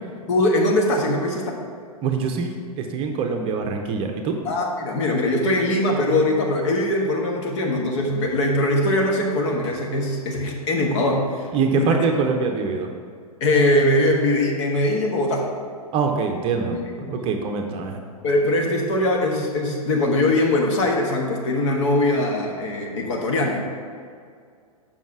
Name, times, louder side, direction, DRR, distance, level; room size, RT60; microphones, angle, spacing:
voice 1, 0.3-1.6 4.4-11.5 11.8-11.9 13.4-15.5 16.7-17.3 18.2-23.6, left 1 dB, 50° left, 1 dB, 1.4 m, -21 dB
voice 2, 2.0-4.3 11.5-12.9 15.9-18.0, right 5 dB, 30° right, 4 dB, 0.7 m, -24 dB
7.2 x 5.6 x 4.8 m, 2.2 s
figure-of-eight pair, 105°, 19 cm